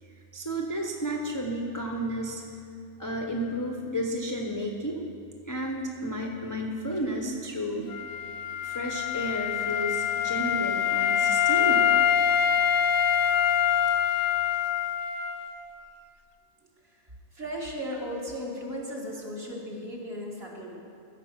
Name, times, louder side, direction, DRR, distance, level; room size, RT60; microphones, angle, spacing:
voice 1, 0.0-2.4 3.0-5.0 5.4-8.0 8.6-12.0, equal, 20° left, -1 dB, 0.6 m, -32 dB
Wind instrument woodwind instrument, 7.9-15.7, left 9 dB, 80° left, 0.4 m, -25 dB
voice 2, 17.3-20.8, equal, 45° right, -3 dB, 1.9 m, -36 dB
14.5 x 5.2 x 7.3 m, 2.4 s
omnidirectional pair, 1.5 m